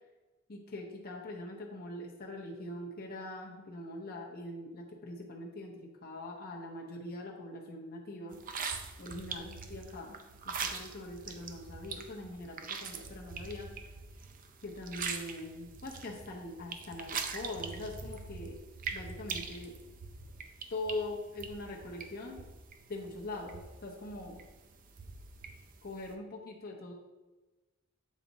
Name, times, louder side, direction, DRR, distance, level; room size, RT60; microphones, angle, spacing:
voice 1, 0.5-8.4 9.0-10.2 10.4-13.7 14.6-18.6 18.9-19.7 20.7-22.4 22.9-24.4 25.8-26.9, left 2 dB, 45° left, -1 dB, 0.9 m, -42 dB
sound 1, 8.3-26.1, right 5 dB, 40° right, 0.5 m, -43 dB
7.4 x 4.2 x 4.1 m, 1.1 s
head